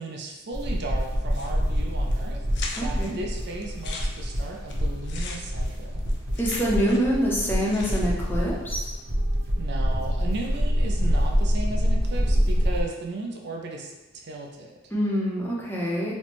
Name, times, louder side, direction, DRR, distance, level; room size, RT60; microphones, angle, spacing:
voice 1, 0.0-2.4 2.8-6.0 9.6-14.7, right 2 dB, 55° right, 1 dB, 0.5 m, -36 dB
sound 1, 0.5-12.8, equal, 80° right, 0.9 m, -26 dB
sound 2, 1.3-1.8 2.1-2.2 2.5-3.1 3.6-7.2 7.4-8.3, left 4 dB, 60° left, 0.4 m, -39 dB
voice 2, 2.8-3.1 6.4-8.9 14.9-16.1, equal, 10° left, -4 dB, 0.6 m, -25 dB
4.2 x 2.1 x 3.0 m, 1.1 s
head